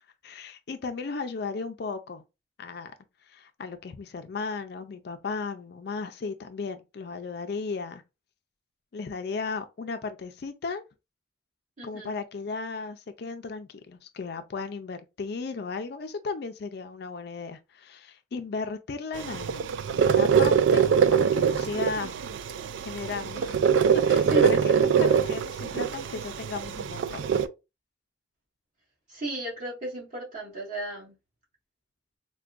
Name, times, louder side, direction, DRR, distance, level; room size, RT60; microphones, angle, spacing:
voice 1, 0.2-2.2 2.6-2.9 3.3-8.0 8.9-10.8 11.8-19.6 20.1-20.8 21.1-22.1 22.8-27.2, left 4 dB, 55° left, 0.4 m, -35 dB
voice 2, 11.8-12.1 24.3-24.8 29.1-31.1, right 1 dB, 40° right, 1.8 m, -35 dB
sound 1, 19.1-27.5, right 7 dB, 70° right, 0.3 m, -23 dB
4.5 x 2.2 x 2.4 m
head